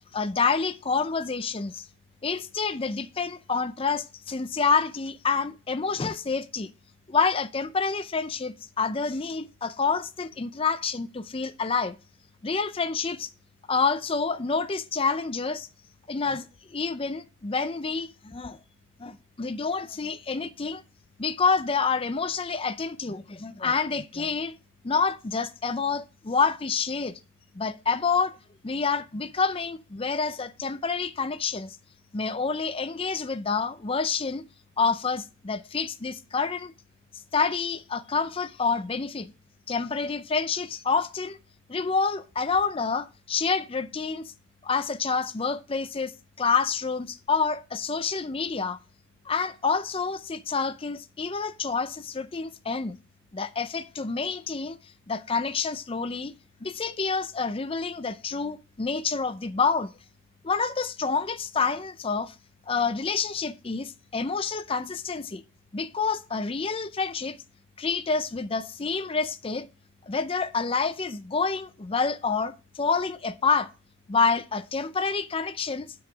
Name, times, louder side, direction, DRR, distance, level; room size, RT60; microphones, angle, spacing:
voice 1, 0.1-1.9 2.2-6.7 7.1-12.0 12.4-13.3 13.7-15.7 16.1-18.6 19.0-20.8 21.2-24.6 24.8-27.2 27.5-28.3 28.6-31.8 32.1-34.5 34.8-36.7 37.3-39.3 39.7-41.4 41.7-44.3 44.6-46.1 46.4-48.8 49.3-53.0 53.3-54.8 55.1-56.3 56.6-59.9 60.4-62.3 62.7-65.4 65.7-67.4 67.8-69.7 70.1-73.7 74.1-75.9, left 5 dB, 25° left, 0.5 m, -28 dB
9.2 x 4.8 x 6.2 m
head